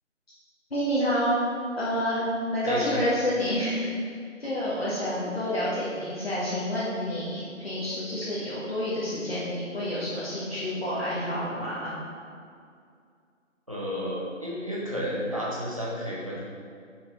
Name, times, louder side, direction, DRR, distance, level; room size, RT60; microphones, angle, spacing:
voice 1, 0.7-1.3 1.7-2.2 2.5-4.1 4.4-12.0, equal, 50° left, -9 dB, 1.3 m, -29 dB
voice 2, 2.6-3.0 5.2-5.4 13.7-16.4, equal, 25° right, -6 dB, 1.0 m, -31 dB
5.9 x 5.6 x 3.1 m, 2.3 s
figure-of-eight pair, 175°, 39 cm